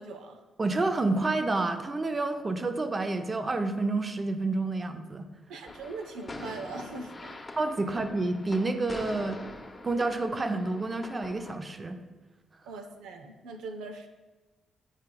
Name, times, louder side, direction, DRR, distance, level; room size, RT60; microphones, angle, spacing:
voice 1, 0.0-0.4 5.5-7.4 12.6-14.1, right 3 dB, 90° right, 6 dB, 0.5 m, -41 dB
voice 2, 0.6-5.3 7.6-9.4 9.8-12.0, right 2 dB, 30° right, 7 dB, 0.6 m, -29 dB
sound 1, 5.7-11.6, left 2 dB, 25° left, 0.8 m, -44 dB
9.8 x 4.7 x 2.2 m, 1.2 s
cardioid pair, 70°, 0 cm